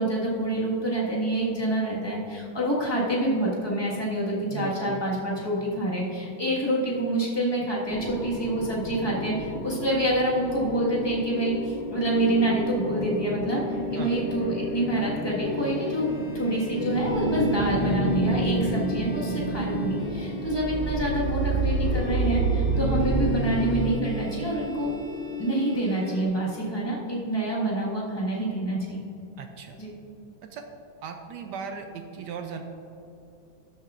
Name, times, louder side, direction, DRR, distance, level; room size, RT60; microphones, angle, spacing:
voice 1, 0.0-13.6 13.9-24.9 25.4-29.1 29.8-30.0, right 1 dB, 15° left, -5 dB, 1.5 m, -27 dB
voice 2, 4.5-5.0 14.0-14.1 29.4-29.8 30.4-30.7 31.0-32.6, right 6 dB, 70° right, 5 dB, 1.0 m, -37 dB
sound 1, 7.9-23.9, right 2 dB, 30° left, 0.9 m, -30 dB
sound 2, 10.5-26.2, left 1 dB, 85° left, 0.4 m, -35 dB
12.5 x 7.3 x 2.5 m, 2.8 s
omnidirectional pair, 2.2 m